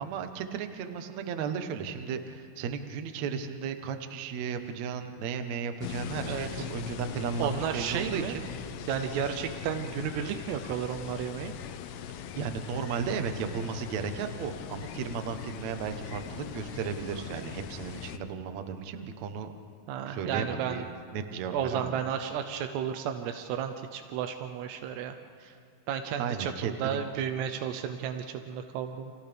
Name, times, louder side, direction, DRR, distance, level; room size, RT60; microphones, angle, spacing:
voice 1, 0.0-8.4 12.3-19.5 20.1-20.9 21.1-22.0 26.2-27.1, right 6 dB, 65° right, 7 dB, 1.8 m, -35 dB
sound 1, 5.8-18.2, left 7 dB, 85° left, 2.9 m, -40 dB
voice 2, 6.2-6.7 7.4-8.4 8.9-11.5 19.9-20.8 21.5-25.2 25.4-25.5 25.9-29.1, right 8 dB, 90° right, 7 dB, 3.0 m, -33 dB
30.0 x 29.5 x 3.5 m, 2.4 s
omnidirectional pair, 4.7 m